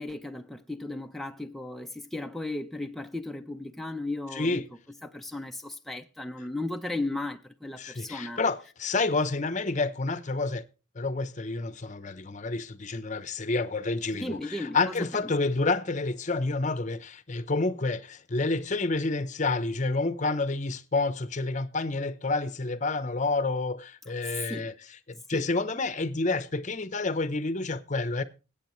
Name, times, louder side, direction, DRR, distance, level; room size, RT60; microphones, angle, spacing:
voice 1, 0.0-4.6 5.0-8.4 14.1-15.1 24.5-24.7 25.3-25.4, left 2 dB, ahead, 0.6 m, -35 dB
voice 2, 4.3-4.6 7.8-10.6 10.9-24.7 25.1-28.2, left 3 dB, 35° left, 0.8 m, -29 dB
20.5 x 8.6 x 3.1 m
head